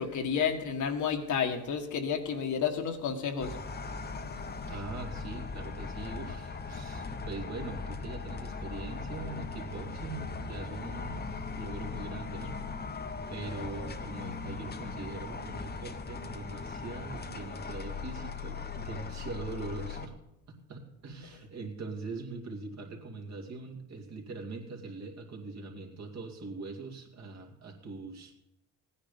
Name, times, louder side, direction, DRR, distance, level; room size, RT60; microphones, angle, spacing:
voice 1, 0.0-3.6, left 7 dB, 60° left, 5 dB, 1.5 m, -31 dB
sound 1, 3.4-20.1, left 4 dB, 30° left, 1.0 m, -39 dB
voice 2, 4.7-11.3 11.5-12.6 13.3-20.1 20.5-28.3, right 3 dB, 50° right, 2 dB, 2.4 m, -42 dB
15.5 x 9.8 x 5.2 m, 0.87 s
cardioid pair, 100°, 34 cm